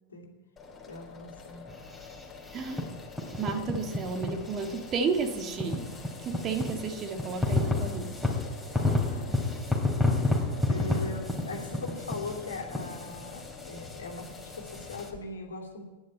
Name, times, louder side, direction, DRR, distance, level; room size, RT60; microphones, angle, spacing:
sound 1, 0.6-15.2, left 4 dB, 20° left, 3.2 m, -47 dB
voice 1, 0.9-1.6 8.7-9.3 10.7-15.8, left 2 dB, 70° left, 1 dB, 2.8 m, -40 dB
sound 2, 1.7-15.1, left 2 dB, ahead, 3.0 m, -31 dB
voice 2, 2.5-2.9 3.4-5.9 6.2-8.4, right 5 dB, 30° right, 5 dB, 1.9 m, -32 dB
11.0 x 10.5 x 8.5 m, 1.1 s
figure-of-eight pair, 90°, 0 cm